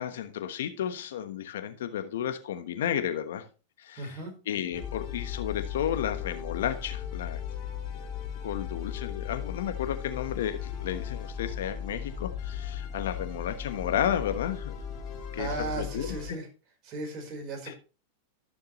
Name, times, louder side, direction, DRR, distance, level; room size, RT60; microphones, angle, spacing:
voice 1, 0.0-3.4 3.8-4.2 4.5-7.4 8.4-14.7 15.3-16.4 17.7-17.8, left 9 dB, 75° left, 9 dB, 1.2 m, -32 dB
voice 2, 4.0-4.3 15.4-16.5 16.8-17.8, right 3 dB, 40° right, 3 dB, 4.4 m, -36 dB
sound 1, 4.7-16.3, left 8 dB, 40° left, 4.2 m, -37 dB
12.5 x 6.7 x 3.1 m, 0.33 s
hypercardioid pair, 115°, 0 cm